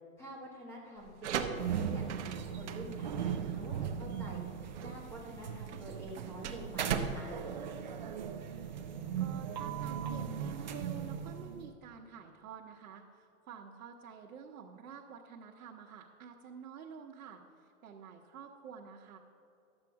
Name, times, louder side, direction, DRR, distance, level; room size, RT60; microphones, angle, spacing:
voice 1, 0.2-2.0 2.4-4.4 4.8-7.3, right 1 dB, 5° left, -3 dB, 1.2 m, -47 dB
sound 1, 1.0-8.6, right 7 dB, 55° right, 0.8 m, -40 dB
sound 2, 1.5-11.7, right 8 dB, 35° right, 0.4 m, -38 dB
voice 2, 9.2-19.2, right 6 dB, 80° right, -2 dB, 1.1 m, -49 dB
11.5 x 7.5 x 4.7 m, 2.6 s
supercardioid pair, 170°, 42 cm